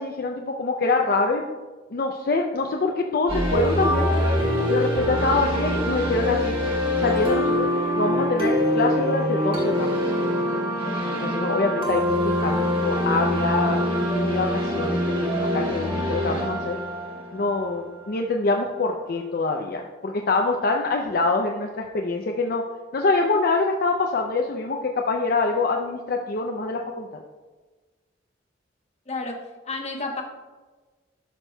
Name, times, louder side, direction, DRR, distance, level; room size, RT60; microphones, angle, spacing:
voice 1, 0.0-1.4 1.9-4.1 4.7-6.6 7.0-10.3 11.2-16.8 17.3-22.6 22.9-27.2, left 3 dB, 50° left, 2 dB, 0.5 m, -25 dB
sound 1, 3.3-18.1, equal, 30° right, 1.8 m, -24 dB
voice 2, 29.1-30.2, left 3 dB, 35° left, 2 dB, 1.0 m, -31 dB
12.5 x 5.9 x 2.2 m, 1.3 s
head